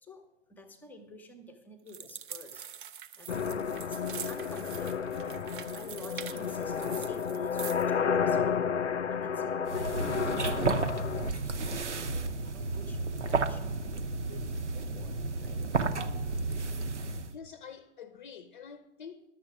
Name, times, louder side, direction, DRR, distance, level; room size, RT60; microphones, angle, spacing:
voice 1, 0.0-2.7 3.1-3.6 3.9-8.7 9.1-11.5 12.0-14.1 14.7-16.0, left 2 dB, 5° left, 0.7 m, -50 dB
sound 1, 1.9-7.9, right 9 dB, 45° right, 0.6 m, -44 dB
sound 2, 3.3-11.3, left 6 dB, 85° left, 0.5 m, -31 dB
sound 3, 9.7-17.4, right 3 dB, 80° right, 0.8 m, -32 dB
voice 2, 17.3-19.2, left 7 dB, 45° left, 0.7 m, -47 dB
11.5 x 7.3 x 5.9 m
figure-of-eight pair, 115°, 35 cm